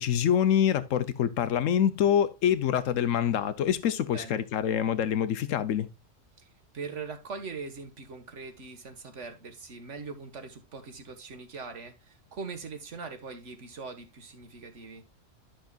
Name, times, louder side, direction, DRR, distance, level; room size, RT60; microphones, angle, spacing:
voice 1, 0.0-5.9, left 9 dB, 85° left, 1.1 m, -25 dB
voice 2, 6.4-15.0, right 4 dB, 70° right, 1.8 m, -41 dB
11.5 x 6.3 x 2.4 m
omnidirectional pair, 1.3 m